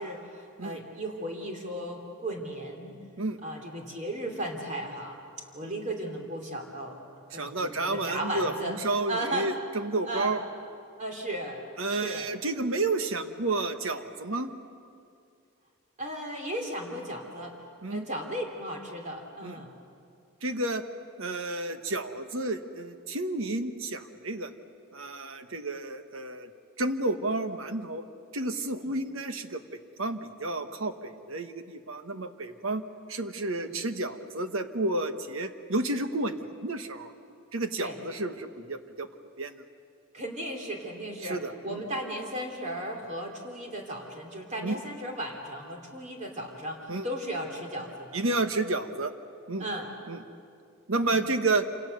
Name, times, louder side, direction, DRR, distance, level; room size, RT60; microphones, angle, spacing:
voice 1, 0.0-2.9 3.4-5.2 5.5-7.0 7.3-8.8 9.1-9.5 10.0-10.4 11.0-11.6 11.9-12.3 16.0-17.5 17.9-19.7 33.6-33.7 37.8-38.0 40.1-48.2 49.6-49.9 51.0-51.2, right 1 dB, 35° right, 1 dB, 3.1 m, -35 dB
voice 2, 7.3-10.4 11.8-14.5 17.8-18.0 19.4-19.6 20.4-20.8 21.2-24.5 24.9-26.5 26.8-28.0 28.3-32.8 33.1-37.1 37.5-39.1 39.4-39.6 41.2-41.8 44.6-44.8 46.9-47.1 48.1-49.1 49.5-49.6 50.1-50.2 50.9-51.7, right 2 dB, 65° right, 8 dB, 1.3 m, -31 dB
28.0 x 27.0 x 6.7 m, 2.4 s
head